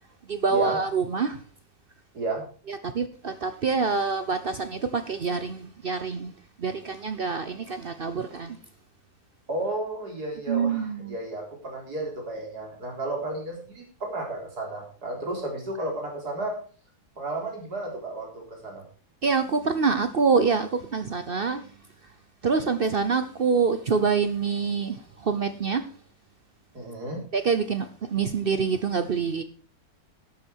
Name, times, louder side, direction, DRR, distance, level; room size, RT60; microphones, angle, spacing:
voice 1, 0.3-1.4 2.7-6.3 6.6-8.6 10.5-11.1 19.2-21.6 22.4-25.8 27.3-29.4, right 5 dB, 45° right, 0.8 m, -26 dB
voice 2, 9.5-16.5 17.2-18.8 26.7-27.2, right 2 dB, 85° right, 4.6 m, -33 dB
12.5 x 8.6 x 4.5 m
omnidirectional pair, 1.6 m